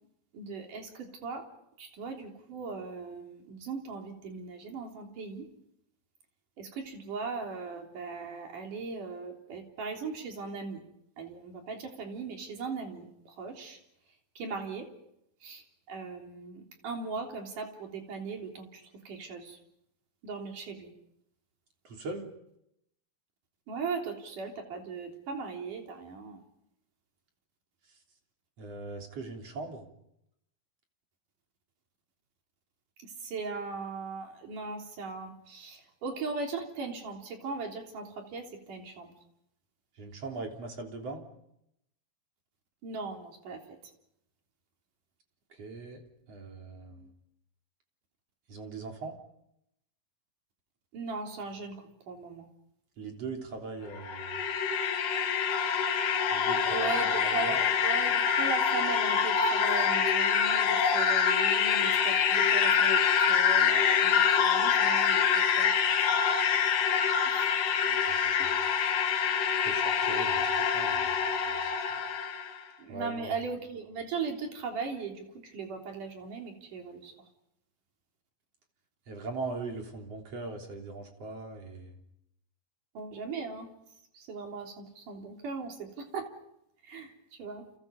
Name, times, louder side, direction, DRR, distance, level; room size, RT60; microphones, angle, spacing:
voice 1, 0.3-1.5 1.8-5.5 6.6-10.8 11.2-13.8 14.4-14.9 15.4-19.6 20.2-20.9 23.7-26.4 33.0-39.1 42.8-43.8 50.9-52.5 56.6-65.7 67.2-67.5 68.4-68.5 72.8-77.1 82.9-83.7 84.1-86.3 86.8-87.7, right 4 dB, 60° right, 3 dB, 4.9 m, -38 dB
voice 2, 21.8-22.3 28.6-29.9 40.0-41.2 45.5-46.0 46.3-47.1 48.5-49.2 53.0-54.4 56.3-57.6 65.4-65.7 67.9-68.6 69.6-71.8 72.9-73.3 79.1-82.0, right 3 dB, 45° right, 2 dB, 4.4 m, -41 dB
sound 1, 53.9-72.5, left 7 dB, 65° left, 3.2 m, -26 dB
30.0 x 28.0 x 5.4 m, 0.81 s
omnidirectional pair, 4.2 m